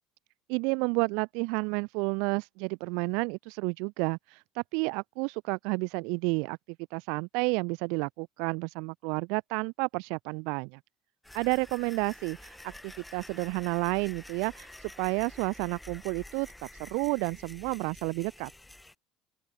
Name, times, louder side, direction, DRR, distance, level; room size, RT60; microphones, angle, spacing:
voice 1, 0.5-6.6 6.9-10.8 11.3-16.5 16.8-18.5, right 33 dB, 75° right, 0.7 m, -31 dB
sound 1, 11.2-18.9, left 1 dB, 10° left, 6.5 m, -49 dB
open air
hypercardioid pair, 80°, 0 cm